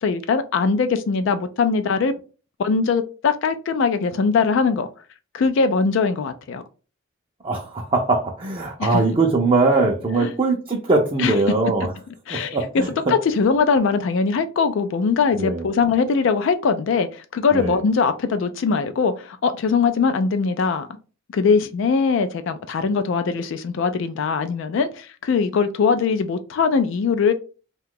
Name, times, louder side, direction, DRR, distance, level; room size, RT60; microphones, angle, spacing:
voice 1, 0.0-2.1 2.6-4.9 5.3-6.6 8.8-9.0 10.2-10.3 11.2-11.3 12.3-12.8 13.1-20.9 21.3-27.3, left 5 dB, 65° left, 0.3 m, -21 dB
voice 2, 7.4-11.9 12.3-13.1 15.3-15.7 17.5-17.8, right 3 dB, 30° right, 0.5 m, -21 dB
2.7 x 2.3 x 3.6 m
head